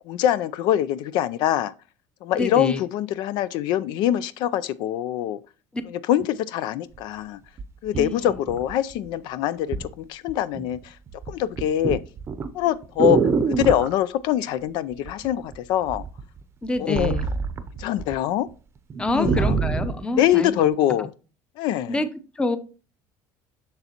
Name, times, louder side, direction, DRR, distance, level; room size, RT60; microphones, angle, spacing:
voice 1, 0.1-1.7 2.2-5.4 6.1-7.4 7.8-11.0 11.3-12.0 12.5-13.2 13.5-16.1 16.8-17.1 17.8-18.5 19.1-19.5 20.1-21.1 21.6-22.0, left 11 dB, 70° left, 0.4 m, -24 dB
voice 2, 2.3-2.8 5.7-5.8 8.0-8.4 16.6-17.3 19.0-20.7 21.9-22.1 22.3-22.6, left 2 dB, 10° left, 0.7 m, -27 dB
sound 1, 6.9-7.0 7.6-9.1 9.7-9.9 10.3-10.8 11.1-13.9 15.0-15.6 15.9-18.2 18.5-18.6 18.9-20.0 20.7-20.8, right 5 dB, 30° right, 0.6 m, -25 dB
6.9 x 6.6 x 2.9 m
cardioid pair, 125°, 8 cm